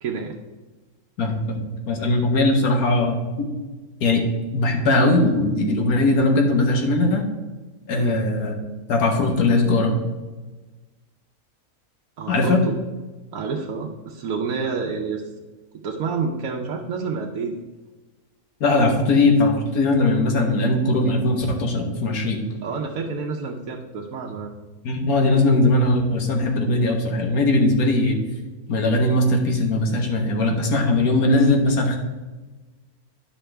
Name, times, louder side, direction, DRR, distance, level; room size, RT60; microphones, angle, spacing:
voice 1, 0.0-0.4 7.9-8.2 12.2-12.7 13.3-15.2 15.8-17.6 22.6-24.5, right 5 dB, 70° right, -1 dB, 1.1 m, -28 dB
voice 2, 1.2-3.5 4.0-4.2 4.5-7.2 7.9-8.5 8.9-9.9 12.3-12.6 18.6-22.4 24.8-28.2 28.7-32.0, left 2 dB, 75° left, 2 dB, 1.6 m, -20 dB
9.9 x 5.6 x 3.3 m, 1.2 s
omnidirectional pair, 1.6 m